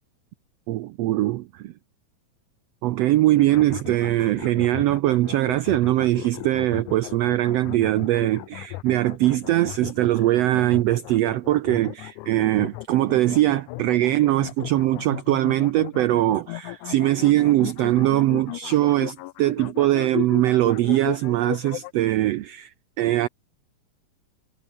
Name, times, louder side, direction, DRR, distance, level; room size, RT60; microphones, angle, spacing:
voice 1, 0.7-1.7 2.8-22.7 23.0-23.3, right 15 dB, 85° right, 1.4 m, -21 dB
sound 1, 3.4-21.9, left 19 dB, 80° left, 2.0 m, -36 dB
omnidirectional pair, 3.7 m